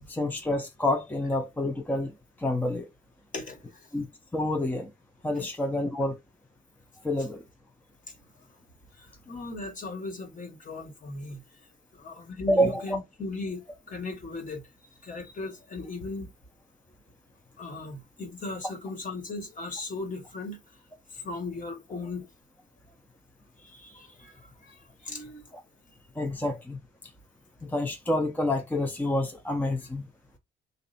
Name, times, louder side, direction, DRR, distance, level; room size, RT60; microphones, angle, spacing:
voice 1, 0.1-2.1 2.4-2.9 3.9-4.1 4.3-4.9 5.2-6.2 7.0-7.4 12.5-13.0 25.5-25.6 26.2-26.8 27.6-30.1, left 1 dB, 10° left, 0.7 m, -28 dB
voice 2, 3.3-3.9 5.4-5.5 9.0-11.6 11.9-14.6 15.0-16.3 17.6-20.6 21.1-22.3 23.6-25.4, left 3 dB, 40° left, 1.6 m, -38 dB
3.2 x 2.6 x 4.1 m
cardioid pair, 90°, 20 cm